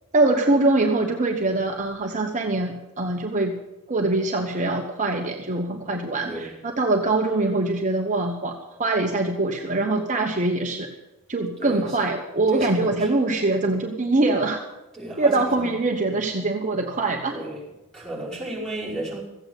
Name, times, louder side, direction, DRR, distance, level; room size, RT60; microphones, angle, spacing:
voice 1, 0.1-3.5 3.9-10.9 11.3-14.6 15.2-17.4, right 2 dB, 35° right, 2 dB, 1.1 m, -23 dB
voice 2, 5.7-6.5 11.6-12.0 12.5-13.1 14.9-15.7 17.3-17.6 17.9-19.2, right 1 dB, 5° left, -5 dB, 5.4 m, -34 dB
14.5 x 8.7 x 8.1 m, 1.0 s
head